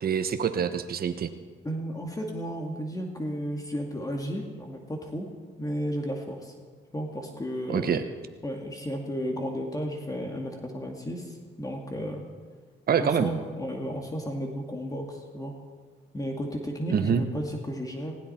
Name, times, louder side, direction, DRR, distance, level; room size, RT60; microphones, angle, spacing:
voice 1, 0.0-1.3 7.7-8.0 12.9-13.3 16.9-17.2, right 7 dB, 50° right, 9 dB, 1.0 m, -25 dB
voice 2, 1.6-5.3 5.6-6.5 6.9-8.0 8.4-12.2 13.0-15.5 16.1-18.1, equal, 20° left, 2 dB, 2.1 m, -33 dB
19.5 x 16.0 x 4.4 m, 1.5 s
cardioid pair, 90°, 20 cm